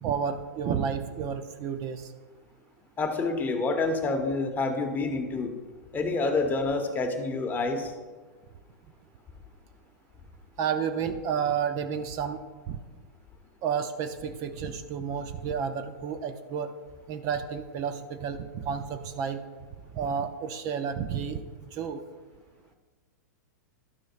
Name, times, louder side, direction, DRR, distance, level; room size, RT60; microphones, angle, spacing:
voice 1, 0.0-2.1 10.6-12.8 13.6-16.7 17.1-19.4 19.9-21.4 21.7-22.0, right 7 dB, 40° right, 8 dB, 0.5 m, -31 dB
voice 2, 3.0-5.5 5.9-7.9, left 3 dB, 20° left, 5 dB, 1.0 m, -28 dB
12.0 x 6.3 x 2.5 m, 1.4 s
hypercardioid pair, 115°, 10 cm